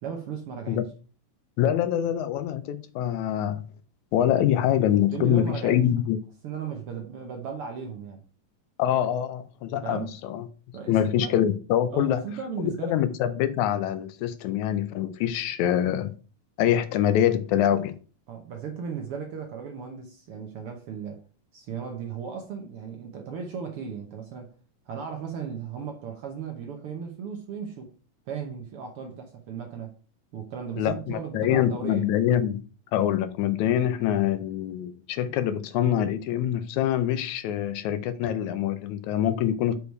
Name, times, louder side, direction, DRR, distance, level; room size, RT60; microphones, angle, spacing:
voice 1, 0.0-0.8 5.1-5.8 6.4-8.3 9.8-10.1 10.7-11.3 11.9-13.0 18.3-21.2 21.5-24.5 24.9-27.9 28.3-30.0 30.3-32.1, right 6 dB, 65° right, 1.4 m, -36 dB
voice 2, 1.6-3.6 4.1-6.2 8.8-10.5 10.9-12.2 12.6-16.1 16.6-18.0 30.8-32.6 32.9-39.8, left 10 dB, 75° left, 1.9 m, -25 dB
6.8 x 4.8 x 4.6 m
omnidirectional pair, 3.6 m